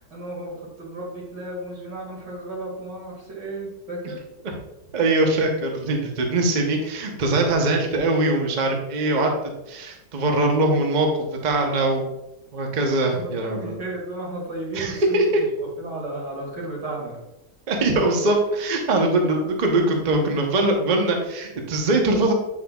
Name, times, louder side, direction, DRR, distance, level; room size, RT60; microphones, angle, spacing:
voice 1, 0.0-4.2 9.0-9.4 13.1-17.2, right 2 dB, 85° right, -3 dB, 2.7 m, -34 dB
voice 2, 4.9-9.3 9.7-12.0 12.5-13.8 14.7-15.2 17.7-22.3, right 2 dB, 35° right, 2 dB, 0.7 m, -22 dB
8.1 x 5.9 x 2.3 m, 0.93 s
omnidirectional pair, 1.8 m